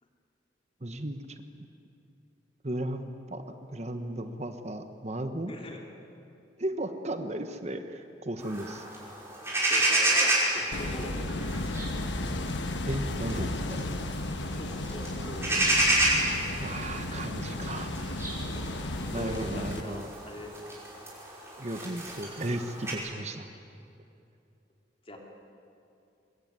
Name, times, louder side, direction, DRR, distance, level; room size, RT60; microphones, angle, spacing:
voice 1, 0.8-1.7 2.6-3.4 3.7-5.5 6.6-8.9 12.9-13.8 16.6-17.9 19.1-20.1 21.6-23.5, right 1 dB, 35° right, 7 dB, 1.2 m, -35 dB
voice 2, 5.5-5.8 9.6-11.3 14.5-15.6 18.5-20.8 25.0-25.2, left 1 dB, 30° left, 1 dB, 3.4 m, -42 dB
sound 1, 8.4-22.9, right 1 dB, 15° right, 5.7 m, -30 dB
sound 2, 10.7-19.8, left 2 dB, 80° left, 1.3 m, -34 dB
24.0 x 21.5 x 9.6 m, 2.7 s
head